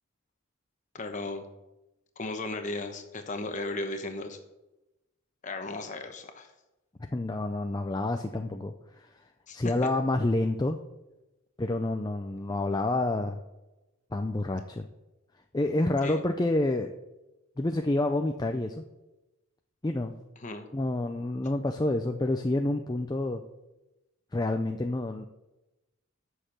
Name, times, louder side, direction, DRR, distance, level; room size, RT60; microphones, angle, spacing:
voice 1, 0.9-1.4 2.2-4.4 5.4-6.5 9.5-9.7 16.0-16.2 20.4-20.7, left 2 dB, 35° left, 6 dB, 1.1 m, -35 dB
voice 2, 7.1-9.1 9.5-10.8 11.6-13.4 14.1-14.9 15.5-16.9 17.6-18.8 19.8-20.1 20.7-23.4 24.3-25.3, left 2 dB, 20° left, 5 dB, 0.4 m, -28 dB
7.9 x 6.6 x 7.3 m, 0.99 s
head